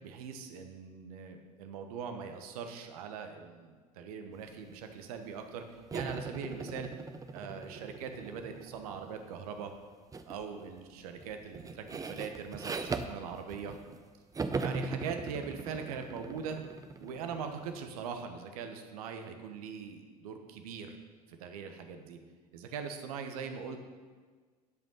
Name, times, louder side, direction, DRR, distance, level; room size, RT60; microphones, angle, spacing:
voice 1, 0.0-5.6 5.9-6.9 7.3-9.7 10.3-13.7 14.6-16.6 17.0-21.0 21.3-22.2 22.5-23.8, right 6 dB, 65° right, 6 dB, 1.1 m, -41 dB
sound 1, 5.9-9.2 10.1-10.4 10.8-14.0 14.3-17.9, right 4 dB, 15° right, 0.6 m, -40 dB
10.5 x 5.4 x 5.4 m, 1.5 s
figure-of-eight pair, 75°, 20 cm